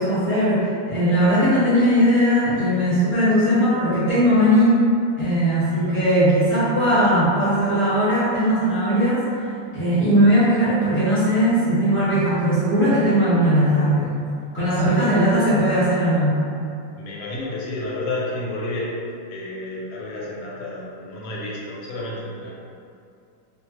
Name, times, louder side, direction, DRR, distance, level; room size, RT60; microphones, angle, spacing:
voice 1, 0.0-4.8 5.2-9.2 9.7-14.2 14.5-16.4, equal, 10° left, -12 dB, 0.7 m, -19 dB
voice 2, 5.7-6.1 14.7-15.3 17.0-18.9 19.3-22.5, left 2 dB, 85° left, -5 dB, 1.4 m, -31 dB
3.0 x 2.0 x 3.0 m, 2.4 s
omnidirectional pair, 2.0 m